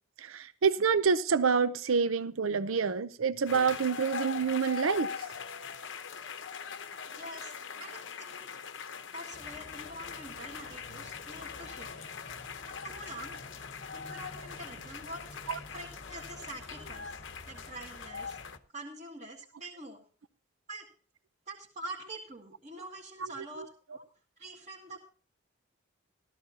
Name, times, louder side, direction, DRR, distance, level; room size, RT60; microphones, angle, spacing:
voice 1, 0.2-5.1 15.5-15.6 23.6-23.7, right 5 dB, 90° right, 0.6 m, -27 dB
sound 1, 3.5-18.6, left 6 dB, 65° left, 0.8 m, -42 dB
voice 2, 7.2-8.6 9.1-12.0 12.7-13.4 13.9-15.2 15.7-17.1 17.5-18.4 18.7-20.0 20.7-20.9 21.5-24.0 24.4-25.0, right 2 dB, 35° right, 1.7 m, -45 dB
sound 2, 9.3-18.6, left 2 dB, 35° left, 0.9 m, -51 dB
14.0 x 14.0 x 2.8 m
head